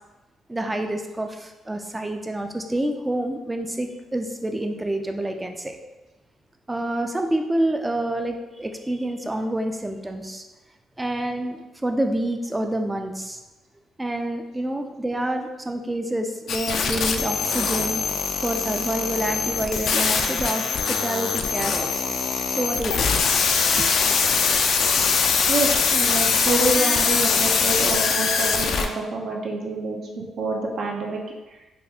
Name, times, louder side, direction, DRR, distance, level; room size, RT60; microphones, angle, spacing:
voice 1, 0.5-5.8 6.7-10.4 11.0-13.4 14.0-18.0 18.4-22.0 22.5-23.1 23.8-23.9, right 1 dB, 15° right, 5 dB, 0.4 m, -28 dB
sound 1, 16.5-28.9, left 5 dB, 65° left, 0.3 m, -22 dB
voice 2, 25.5-31.2, right 2 dB, 60° right, -1 dB, 0.6 m, -27 dB
4.1 x 2.3 x 2.8 m, 1.1 s
cardioid pair, 90°, 0 cm